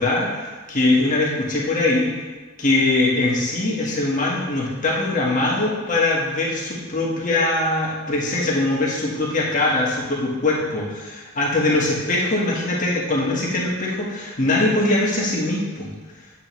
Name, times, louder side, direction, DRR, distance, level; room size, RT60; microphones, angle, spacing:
voice 1, 0.0-2.1 2.6-15.9, left 2 dB, 35° left, -4 dB, 1.5 m, -22 dB
8.6 x 7.4 x 3.1 m, 1.3 s
head